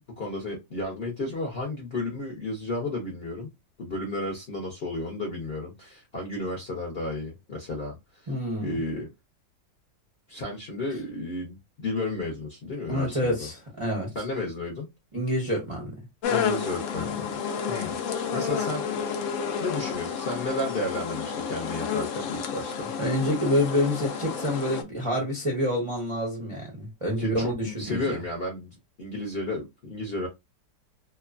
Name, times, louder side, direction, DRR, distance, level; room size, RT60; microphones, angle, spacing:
voice 1, 0.2-3.5 3.8-7.9 8.6-9.1 10.3-13.5 14.1-14.9 16.3-17.4 17.7-18.0 18.3-18.9 19.6-22.9 27.2-28.7 29.0-30.3, left 2 dB, 50° left, 0.7 m, -32 dB
voice 2, 8.3-8.8 12.9-14.1 15.1-16.0 23.0-28.2, left 1 dB, 35° right, 0.5 m, -27 dB
sound 1, 16.2-24.8, left 7 dB, 90° left, 0.6 m, -30 dB
2.9 x 2.2 x 2.4 m
omnidirectional pair, 1.9 m